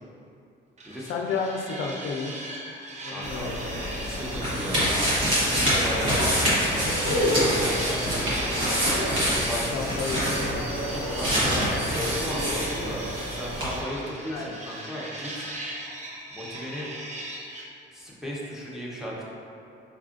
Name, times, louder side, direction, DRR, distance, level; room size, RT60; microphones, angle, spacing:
sound 1, 0.8-6.5 6.8-17.7, right 1 dB, 35° right, 0.6 m, -39 dB
voice 1, 1.1-2.3 3.0-3.5 7.4-7.7 9.7-10.6 14.3-14.5, left 5 dB, 90° left, 1 dB, 0.4 m, -32 dB
voice 2, 3.1-3.5 4.0-4.9 5.6-8.5 9.5-9.6 10.9-15.5 16.3-16.9 17.9-19.2, equal, ahead, -6 dB, 0.8 m, -36 dB
sound 2, 3.2-13.8, equal, 65° right, 1.3 m, -31 dB
sound 3, 3.7-13.3 13.6-13.7, equal, 80° right, 1.2 m, -26 dB
5.1 x 2.4 x 2.4 m, 2.6 s
cardioid pair, 90°, 20 cm